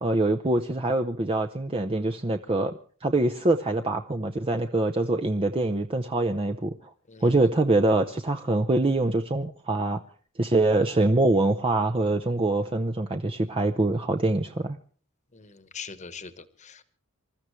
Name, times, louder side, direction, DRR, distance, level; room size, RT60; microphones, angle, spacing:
voice 1, 0.0-2.7 3.0-6.7 7.2-10.0 10.4-14.8, right 2 dB, 25° right, 5 dB, 0.7 m, -24 dB
voice 2, 15.3-16.8, left 6 dB, 35° left, 13 dB, 1.2 m, -42 dB
26.5 x 13.5 x 3.2 m, 0.43 s
head